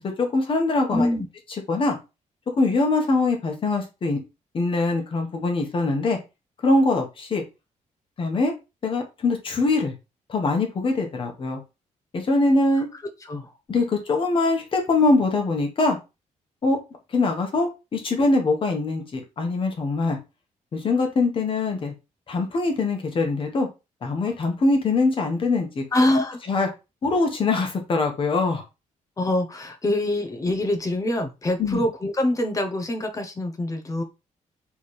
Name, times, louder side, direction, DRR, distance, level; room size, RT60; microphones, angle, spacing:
voice 1, 0.2-1.1 1.7-2.0 2.6-4.2 4.5-6.2 6.6-7.4 8.2-8.5 8.8-9.9 10.3-11.6 12.1-12.9 13.7-16.0 16.6-16.8 17.1-20.2 20.7-21.9 22.3-23.7 24.0-25.8 26.5-26.7 27.0-28.6 31.6-31.8, left 3 dB, 40° left, 2 dB, 1.3 m, -23 dB
voice 2, 0.9-1.3 13.2-13.5 25.9-26.4 29.2-34.0, left 1 dB, 25° left, 6 dB, 0.8 m, -24 dB
3.5 x 3.2 x 4.3 m, 0.27 s
wide cardioid pair, 160°, 14 cm